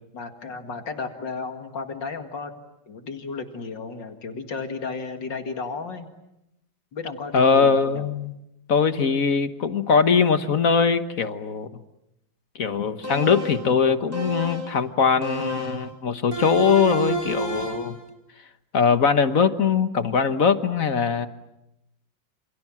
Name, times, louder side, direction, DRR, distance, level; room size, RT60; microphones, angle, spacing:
voice 1, 0.1-2.5 2.9-6.1 6.9-8.0, left 4 dB, 70° left, 6 dB, 2.8 m, -33 dB
voice 2, 7.3-8.3 8.7-11.7 12.6-18.0 18.7-21.3, left 5 dB, 50° left, 10 dB, 1.5 m, -21 dB
sound 1, 13.0-13.7 14.1-14.8 15.2-15.9 16.3-17.9, right 2 dB, 50° right, 5.7 m, -29 dB
28.5 x 28.0 x 7.5 m, 0.86 s
omnidirectional pair, 2.0 m